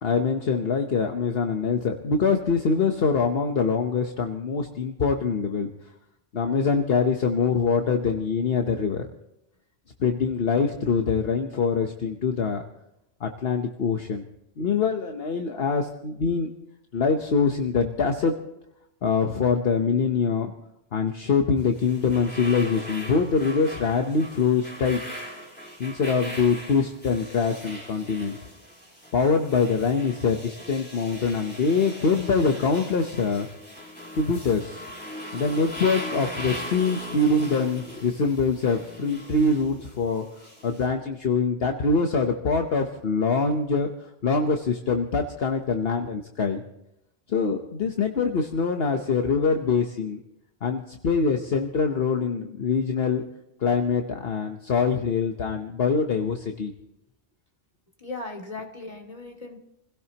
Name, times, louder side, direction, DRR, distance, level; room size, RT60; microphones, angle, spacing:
voice 1, 0.0-5.7 6.3-9.1 10.0-12.6 13.2-14.2 14.6-16.5 16.9-18.4 19.0-20.5 20.9-25.0 25.8-28.4 29.1-33.5 34.1-34.9 35.3-46.6 47.3-50.2 50.6-53.2 53.6-56.7, left 5 dB, 60° left, 4 dB, 1.2 m, -24 dB
sound 1, 21.6-40.9, equal, 10° left, 4.2 m, -40 dB
voice 2, 58.0-59.6, left 2 dB, 30° left, 1 dB, 2.4 m, -37 dB
28.5 x 16.5 x 2.9 m, 0.84 s
omnidirectional pair, 1.2 m